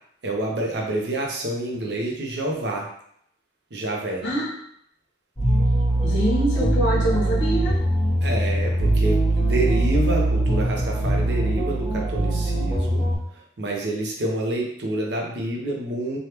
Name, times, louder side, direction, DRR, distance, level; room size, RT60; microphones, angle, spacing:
voice 1, 0.2-2.9 3.7-4.2 8.2-13.1 13.3-16.2, right 1 dB, 65° right, -1 dB, 0.6 m, -28 dB
voice 2, 4.2-4.5 6.0-7.8, equal, 65° left, -5 dB, 1.1 m, -24 dB
sound 1, 5.4-13.2, right 1 dB, 20° left, 1.1 m, -22 dB
3.3 x 2.3 x 2.9 m, 0.69 s
head